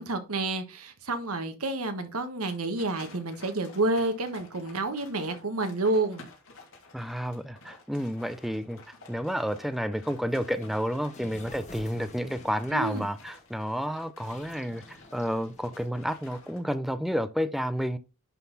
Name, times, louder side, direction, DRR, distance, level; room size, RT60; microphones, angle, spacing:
voice 1, 0.0-6.2 12.7-13.0, right 2 dB, 85° right, 1.5 m, -29 dB
sound 1, 2.4-16.6, left 3 dB, 70° left, 3.0 m, -52 dB
voice 2, 6.9-8.8 9.1-14.8 15.1-18.0, equal, ahead, 0.4 m, -30 dB
sound 2, 10.3-16.2, left 2 dB, 35° left, 1.5 m, -51 dB
11.0 x 4.0 x 4.0 m
head